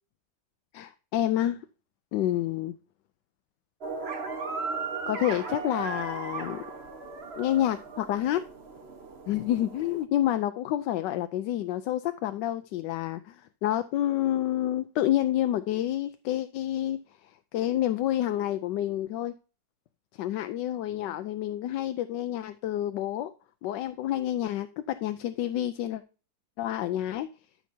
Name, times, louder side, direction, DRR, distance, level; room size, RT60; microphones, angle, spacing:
voice 1, 0.7-1.6 2.1-2.7 5.1-6.6 7.4-8.4 9.3-19.3 20.2-23.3 23.6-26.0 26.6-27.3, left 12 dB, 80° left, 1.2 m, -29 dB
sound 1, 3.8-10.0, right 4 dB, 40° right, 1.2 m, -37 dB
13.5 x 6.0 x 2.7 m
omnidirectional pair, 2.0 m